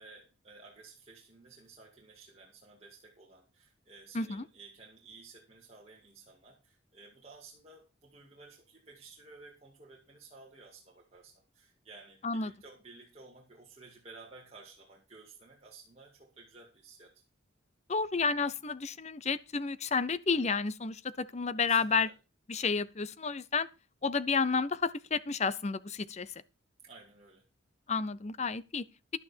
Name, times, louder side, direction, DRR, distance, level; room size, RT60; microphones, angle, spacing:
voice 1, 0.0-17.2 21.6-22.1 26.8-27.5, right 3 dB, 30° right, 2.3 m, -54 dB
voice 2, 17.9-22.1 22.5-23.7 24.0-26.3 27.9-28.8, left 5 dB, 35° left, 0.6 m, -31 dB
11.5 x 9.4 x 4.4 m
head